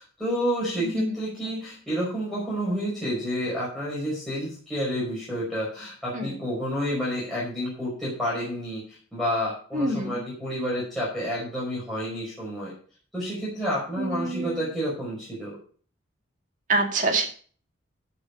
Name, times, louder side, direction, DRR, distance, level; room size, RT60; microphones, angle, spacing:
voice 1, 0.0-8.8 9.1-12.7 13.1-15.6, equal, ahead, -8 dB, 5.2 m, -29 dB
voice 2, 0.8-1.2 6.1-6.4 9.7-10.2 14.0-14.6 16.7-17.3, right 2 dB, 40° right, 3 dB, 2.3 m, -26 dB
14.5 x 6.2 x 5.3 m, 0.43 s
head